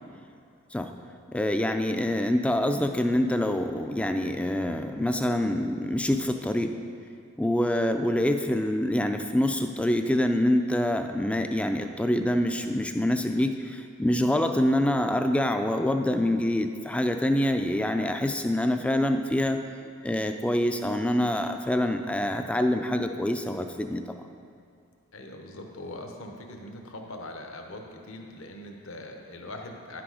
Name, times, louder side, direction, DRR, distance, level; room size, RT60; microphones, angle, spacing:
voice 1, 1.3-6.7 7.4-19.6 20.0-24.0, left 1 dB, 5° left, 6 dB, 0.3 m, -26 dB
voice 2, 25.1-30.0, left 1 dB, 65° left, 3 dB, 0.9 m, -41 dB
10.5 x 6.1 x 4.8 m, 2.4 s
head